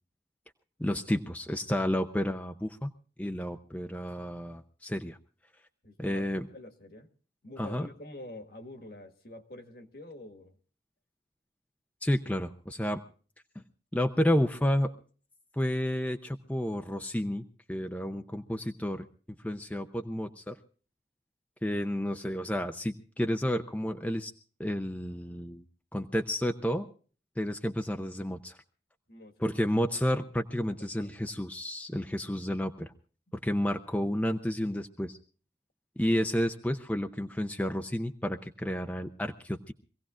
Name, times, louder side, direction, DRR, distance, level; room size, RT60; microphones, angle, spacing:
voice 1, 0.8-2.9 3.2-5.2 6.0-6.5 7.6-7.9 12.0-13.0 13.9-14.9 15.5-19.1 19.4-20.6 21.6-24.3 24.6-25.6 25.9-26.9 27.4-28.6 29.4-32.9 33.3-35.2 36.0-39.7, equal, 10° left, 0.6 m, -31 dB
voice 2, 5.8-7.1 7.4-10.6 29.1-29.5 30.7-31.1, left 1 dB, 55° left, 1.7 m, -47 dB
25.0 x 17.0 x 2.5 m
head